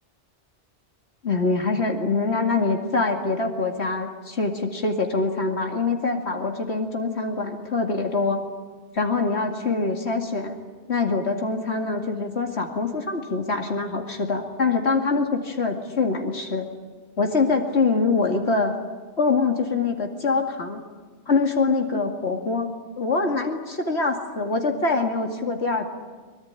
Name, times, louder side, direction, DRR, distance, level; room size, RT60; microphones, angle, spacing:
voice 1, 1.2-8.4 8.9-10.6 10.9-16.7 17.2-18.7 19.2-20.8 21.3-22.7 23.0-25.9, left 3 dB, 70° left, 2 dB, 2.7 m, -24 dB
23.5 x 22.0 x 9.9 m, 1.4 s
omnidirectional pair, 1.1 m